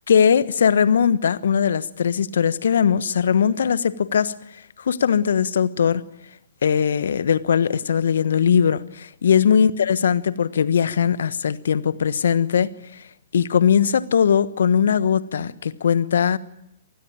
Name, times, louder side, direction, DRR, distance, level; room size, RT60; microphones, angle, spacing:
voice 1, 0.1-6.0 6.6-13.0 13.3-16.4, left 7 dB, 65° left, 1.3 m, -20 dB
27.5 x 19.5 x 9.0 m
figure-of-eight pair, 120°, 0 cm